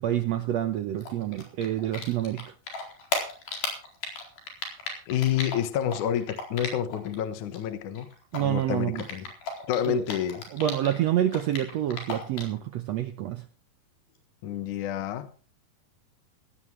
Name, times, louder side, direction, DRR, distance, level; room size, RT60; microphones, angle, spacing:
voice 1, 0.0-2.5 8.3-9.0 9.8-10.0 10.5-13.5, right 12 dB, 80° right, 10 dB, 1.5 m, -28 dB
Typing, 1.0-2.4 2.7-7.1 7.4-11.0 11.3-12.6, left 4 dB, 90° left, 6.0 m, -35 dB
voice 2, 5.1-8.1 8.4-9.3 9.7-10.5 14.4-15.3, left 10 dB, 65° left, 10 dB, 2.5 m, -29 dB
17.0 x 16.0 x 3.2 m, 0.38 s
omnidirectional pair, 4.1 m